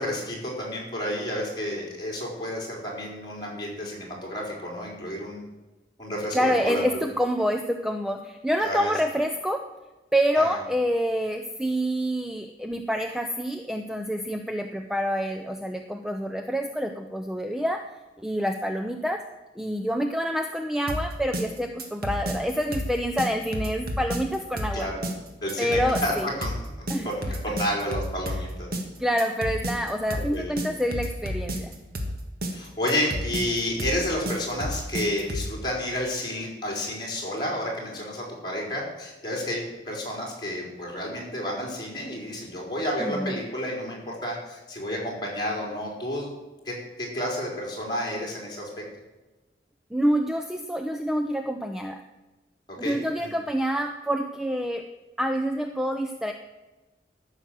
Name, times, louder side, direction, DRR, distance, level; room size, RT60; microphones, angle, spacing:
voice 1, 0.0-5.4 6.0-7.1 8.6-8.9 10.4-10.6 24.7-25.0 25.4-26.5 27.0-28.7 30.1-30.5 32.5-46.3 46.7-48.7 52.7-53.3, left 1 dB, 25° left, -3 dB, 4.4 m, -31 dB
voice 2, 6.3-9.6 10.1-17.8 18.2-19.2 19.6-24.9 25.6-26.3 26.9-27.1 29.0-31.7 43.0-43.4 49.9-52.0 52.8-54.8 55.2-56.3, equal, 5° right, 6 dB, 0.5 m, -27 dB
sound 1, 20.9-35.6, equal, 55° right, 1.8 m, -31 dB
14.0 x 6.5 x 7.6 m, 1.1 s
head